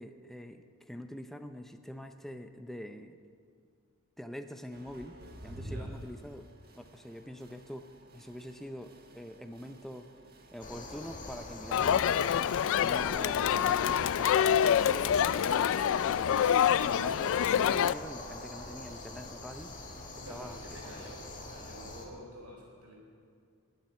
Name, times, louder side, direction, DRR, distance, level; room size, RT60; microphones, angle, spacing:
voice 1, 0.0-3.2 4.2-5.2 5.4-6.5 6.7-10.1 10.5-12.5 12.8-19.7 20.3-20.6 20.8-21.1, equal, ahead, 7 dB, 0.5 m, -45 dB
sound 1, 4.7-21.7, right 1 dB, 45° right, 1.4 m, -53 dB
voice 2, 5.6-5.9 20.1-22.9, equal, 80° right, -1 dB, 4.2 m, -49 dB
sound 2, 10.6-22.1, left 2 dB, 35° left, 1.8 m, -44 dB
Crowd, 11.7-17.9, left 9 dB, 60° left, 0.3 m, -26 dB
21.0 x 7.4 x 6.8 m, 2.2 s
head